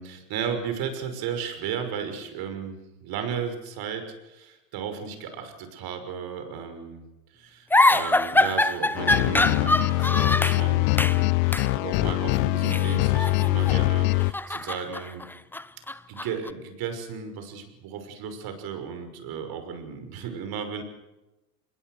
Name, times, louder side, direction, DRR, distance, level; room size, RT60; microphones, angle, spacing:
voice 1, 0.0-7.0 7.3-15.2 16.1-20.8, right 7 dB, 50° right, 7 dB, 6.1 m, -35 dB
sound 1, 7.7-10.6 11.0-11.2 11.5-11.7 12.6-13.8 14.1-16.5, left 2 dB, 5° left, 0.8 m, -24 dB
sound 2, 9.0-14.3, left 22 dB, 55° left, 0.9 m, -23 dB
26.5 x 21.5 x 6.7 m, 1.0 s
hypercardioid pair, 95°, 47 cm